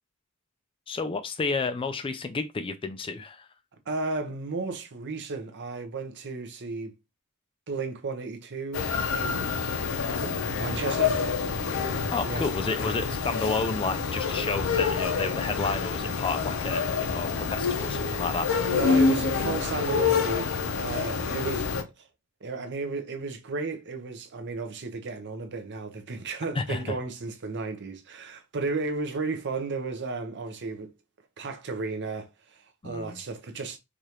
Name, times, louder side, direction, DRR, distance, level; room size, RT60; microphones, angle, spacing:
voice 1, 0.9-3.5 12.1-18.7 26.6-27.0 32.8-33.2, left 4 dB, 25° left, 0.3 m, -31 dB
voice 2, 3.9-6.9 7.7-9.6 10.1-11.2 12.2-12.5 18.6-21.7 22.0-22.1 22.4-30.9 31.4-33.8, right 3 dB, 55° right, 0.7 m, -34 dB
sound 1, 8.7-21.8, left 5 dB, 65° left, 0.6 m, -27 dB
4.8 x 2.4 x 2.9 m
head